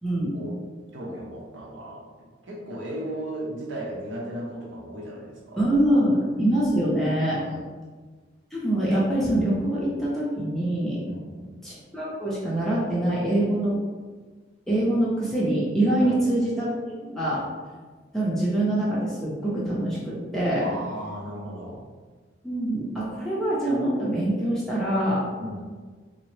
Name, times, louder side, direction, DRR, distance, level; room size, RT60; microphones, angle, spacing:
voice 1, 0.9-5.7 7.3-7.6 11.1-11.6 16.0-16.2 20.6-21.8 25.4-25.6, right 1 dB, 75° right, -3 dB, 0.7 m, -36 dB
voice 2, 5.6-7.4 8.5-11.0 11.6-13.8 14.7-16.7 17.0-17.4 18.1-20.7 22.4-25.2, right 1 dB, ahead, -8 dB, 0.6 m, -24 dB
3.7 x 2.0 x 3.1 m, 1.4 s
head